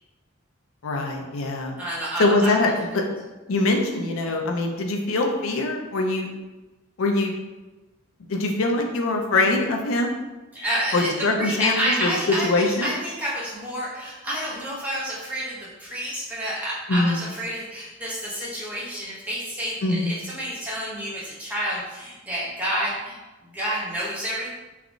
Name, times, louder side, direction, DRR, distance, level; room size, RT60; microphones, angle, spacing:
voice 1, 0.8-1.8 2.2-3.0 3.5-6.3 7.0-7.3 8.3-10.2 10.9-12.9 16.9-17.2 19.8-20.1, left 2 dB, 85° left, 2 dB, 0.5 m, -23 dB
voice 2, 1.8-2.6 10.5-24.5, equal, 5° right, -7 dB, 0.5 m, -29 dB
3.4 x 2.3 x 2.4 m, 1.1 s
head